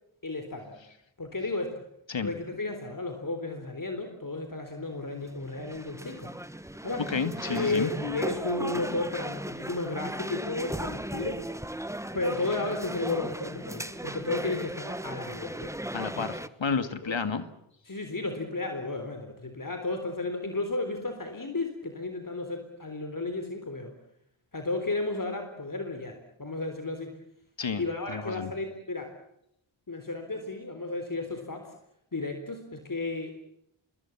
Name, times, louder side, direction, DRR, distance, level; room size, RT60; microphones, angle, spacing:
voice 1, 0.2-0.8 1.2-1.8 2.2-6.3 6.8-7.1 7.4-11.4 12.1-15.7 16.1-16.3 17.0-17.1 17.9-23.9 24.5-27.2 27.8-29.1 29.9-31.7 32.1-33.4, left 2 dB, 40° left, 6 dB, 3.9 m, -33 dB
sound 1, 4.9-16.5, right 1 dB, 5° right, 1.3 m, -37 dB
voice 2, 7.1-7.9 15.9-17.4 27.6-27.8 28.1-28.5, left 5 dB, 65° left, 10 dB, 2.2 m, -31 dB
27.0 x 22.0 x 7.3 m, 0.77 s
cardioid pair, 55°, 48 cm